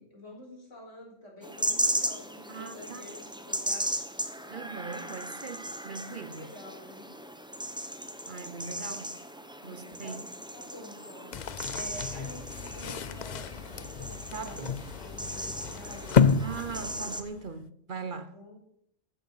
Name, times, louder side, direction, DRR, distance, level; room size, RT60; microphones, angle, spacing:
voice 1, 0.0-3.9 6.0-7.1 9.6-14.6 15.0-16.3 18.3-18.6, left 1 dB, 85° left, 5.0 m, -48 dB
sound 1, 1.4-17.2, equal, 5° right, 0.9 m, -36 dB
voice 2, 2.5-3.1 4.5-6.5 8.3-9.2 9.6-10.2 14.3-14.8 16.4-18.4, right 5 dB, 50° right, 0.9 m, -40 dB
sound 2, 11.3-17.5, left 6 dB, 50° left, 0.6 m, -30 dB
14.0 x 9.8 x 5.6 m
omnidirectional pair, 1.2 m